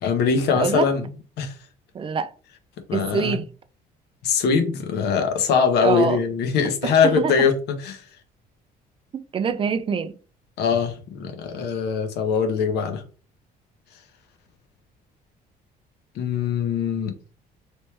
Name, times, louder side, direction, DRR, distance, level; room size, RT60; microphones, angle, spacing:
voice 1, 0.0-1.0 1.4-1.5 2.9-3.4 4.2-8.0 10.6-13.0 16.2-17.1, left 6 dB, 75° left, 0.9 m, -22 dB
voice 2, 0.6-0.9 1.9-2.3 2.9-3.5 5.8-6.2 6.8-7.3 9.1-10.1, right 6 dB, 30° right, 0.3 m, -24 dB
3.1 x 3.0 x 3.2 m
cardioid pair, 110°, 17 cm